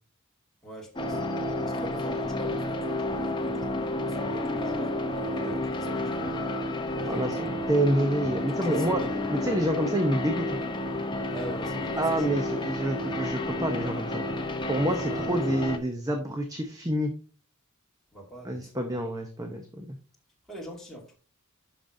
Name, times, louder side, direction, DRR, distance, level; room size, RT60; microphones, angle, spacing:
voice 1, 0.6-1.2 1.6-6.4 6.9-7.3 8.5-9.2 11.3-12.4 14.6-15.3 18.1-18.9 20.5-21.2, right 1 dB, ahead, -3 dB, 2.3 m, -43 dB
sound 1, 1.0-15.8, left 1 dB, 20° left, 0.7 m, -31 dB
voice 2, 7.1-9.0 9.3-10.6 12.0-14.2 14.7-17.1 18.4-20.0, right 1 dB, 15° right, 4 dB, 0.8 m, -28 dB
11.5 x 5.1 x 2.7 m, 0.37 s
head